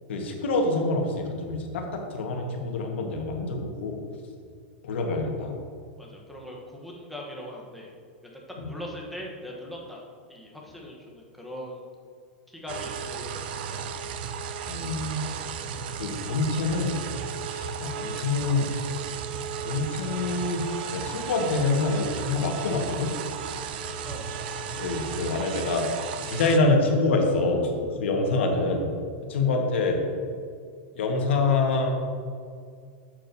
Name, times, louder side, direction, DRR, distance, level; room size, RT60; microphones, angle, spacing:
voice 1, 0.1-4.0 4.8-5.6 8.6-8.7 14.7-15.2 16.0-17.0 17.5-18.7 19.6-23.1 24.8-25.9 26.3-27.7 28.0-28.9 29.3-30.0 31.0-31.9, left 3 dB, 75° left, 2 dB, 1.4 m, -26 dB
voice 2, 6.0-7.9 8.6-11.8 12.5-13.8 14.2-14.3 24.0-24.4, left 1 dB, ahead, -3 dB, 1.0 m, -41 dB
sound 1, 12.7-26.6, right 7 dB, 55° right, 0.5 m, -34 dB
8.8 x 7.6 x 2.7 m, 2.2 s
supercardioid pair, 165°, 6 cm